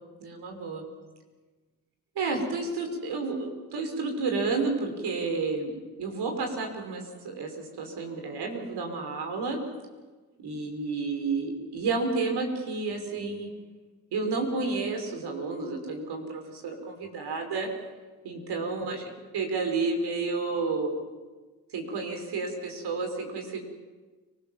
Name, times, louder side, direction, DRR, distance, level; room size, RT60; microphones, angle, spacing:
voice 1, 0.2-0.8 2.2-9.6 10.4-13.5 14.1-17.7 18.2-19.0 19.3-20.9 21.7-23.6, right 3 dB, 70° right, 4 dB, 5.7 m, -31 dB
30.0 x 20.5 x 7.4 m, 1.3 s
hypercardioid pair, 50°, 41 cm